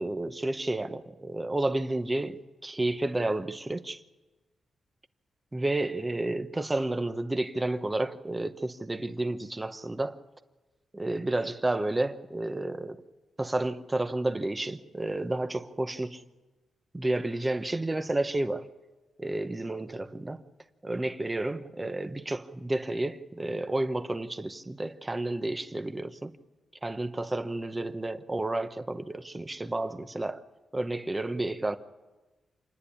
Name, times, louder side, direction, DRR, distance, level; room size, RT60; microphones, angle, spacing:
voice 1, 0.0-4.0 5.5-10.2 10.9-13.0 13.4-16.2 16.9-18.7 19.2-20.4 20.8-26.3 26.8-30.4 30.7-31.8, right 2 dB, 15° right, 0.9 m, -31 dB
27.5 x 10.5 x 9.9 m
wide cardioid pair, 140°, 0 cm